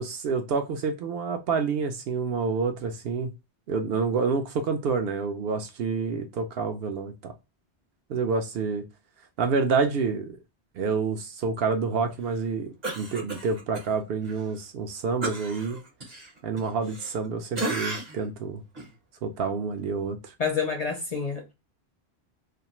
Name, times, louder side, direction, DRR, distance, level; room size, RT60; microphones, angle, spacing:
voice 1, 0.0-3.3 3.7-7.3 8.1-8.8 9.4-10.4 10.7-15.8 16.4-18.6 19.2-20.3, right 5 dB, 65° right, 0.8 m, -28 dB
Cough, 12.8-13.9 14.2-14.4 15.2-17.3 17.5-18.3 18.7-18.9, right 2 dB, 40° right, 1.0 m, -34 dB
voice 2, 20.4-21.5, left 5 dB, 50° left, 0.5 m, -28 dB
2.5 x 2.4 x 2.9 m
omnidirectional pair, 1.1 m